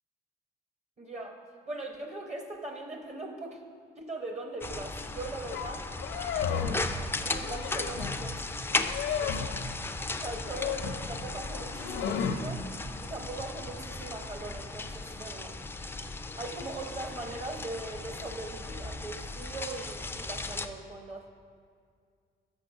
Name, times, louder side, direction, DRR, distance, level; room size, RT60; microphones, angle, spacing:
voice 1, 1.0-1.4 1.7-3.6 4.0-5.9 6.4-8.4 9.2-9.5 10.2-12.7 13.0-15.6 16.4-21.3, right 2 dB, 35° right, 4 dB, 1.0 m, -40 dB
sound 1, 4.6-20.7, left 3 dB, 10° left, 0.3 m, -36 dB
sound 2, 5.5-5.7 5.9-6.9 7.3-8.2 8.7-9.6 10.3-11.1 11.5-12.4, left 7 dB, 80° left, 0.6 m, -33 dB
6.5 x 5.9 x 6.4 m, 2.1 s
cardioid pair, 90°, 20 cm